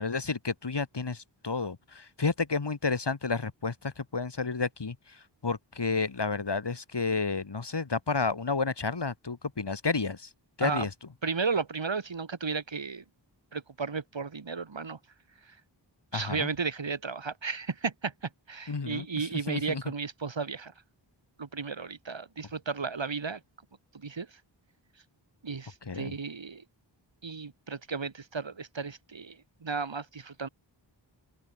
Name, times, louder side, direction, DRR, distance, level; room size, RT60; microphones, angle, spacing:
voice 1, 0.0-5.2 5.4-10.3 10.6-10.9 16.1-16.5 18.7-19.8 25.9-26.1, left 4 dB, 65° left, 2.3 m, -31 dB
voice 2, 11.2-13.0 13.5-15.0 16.1-20.7 21.4-23.4 23.9-24.3 25.4-26.6 27.2-30.5, right 5 dB, 75° right, 2.1 m, -34 dB
wide cardioid pair, 60°, 45 cm